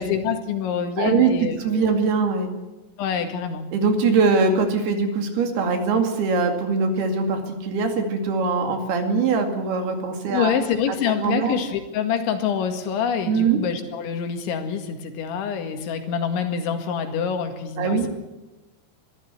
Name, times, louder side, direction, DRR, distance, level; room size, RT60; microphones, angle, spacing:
voice 1, 0.0-1.9 3.0-3.7 10.3-18.1, left 7 dB, 80° left, 6 dB, 4.4 m, -26 dB
voice 2, 1.0-2.5 3.7-10.5 10.9-11.0 11.2-11.6 13.3-13.6 17.8-18.1, right 4 dB, 65° right, 5 dB, 4.1 m, -22 dB
23.0 x 13.5 x 9.4 m, 1.1 s
omnidirectional pair, 5.3 m